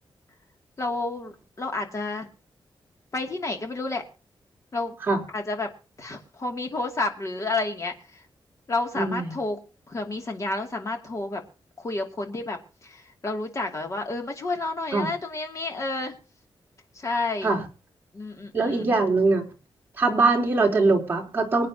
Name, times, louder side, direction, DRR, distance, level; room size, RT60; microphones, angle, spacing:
voice 1, 0.8-2.3 3.1-4.0 4.7-4.9 5.3-5.7 6.0-7.9 8.7-11.4 11.8-16.2 17.0-17.5 18.1-19.0, left 2 dB, 35° left, 3 dB, 2.5 m, -30 dB
voice 2, 9.0-9.4 14.9-15.1 17.4-17.6 18.5-19.4 20.0-21.7, right 3 dB, 25° right, -1 dB, 3.7 m, -22 dB
25.5 x 9.1 x 2.9 m, 0.35 s
wide cardioid pair, 145°, 9 cm